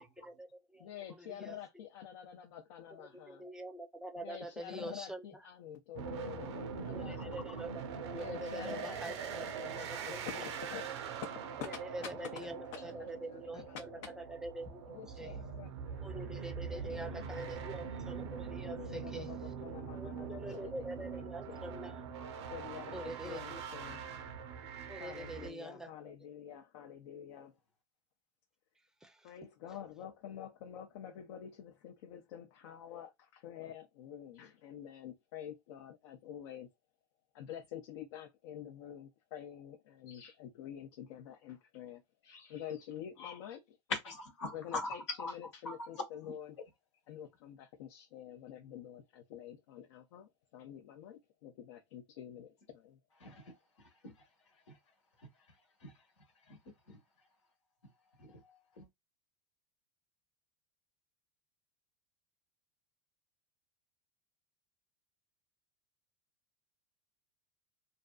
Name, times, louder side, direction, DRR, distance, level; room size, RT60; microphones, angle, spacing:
voice 1, 0.0-0.5 0.7-0.9 1.2-1.6 3.3-5.2 6.9-9.5 9.9-10.2 11.6-12.6 12.8-13.6 14.4-15.4 16.0-19.3 19.9-22.0 22.9-23.6 24.9-26.1 29.0-29.2, right 1 dB, 5° right, 0.5 m, -45 dB
voice 2, 0.8-3.5 4.2-7.5 8.1-11.1 11.6-14.2 14.9-17.9 18.6-21.7 22.5-24.1 24.9-27.5 29.2-36.7 37.3-43.8 44.5-46.6 47.1-53.0, left 10 dB, 70° left, 0.5 m, -48 dB
sound 1, 5.9-25.5, right 6 dB, 75° right, 0.6 m, -43 dB
voice 3, 43.9-46.0 53.2-54.2 54.7-54.8 55.2-55.3 55.8-56.0 56.4-56.6 56.9-57.0 58.2-58.9, left 3 dB, 85° left, 1.1 m, -42 dB
2.5 x 2.5 x 2.3 m
hypercardioid pair, 100°, 14 cm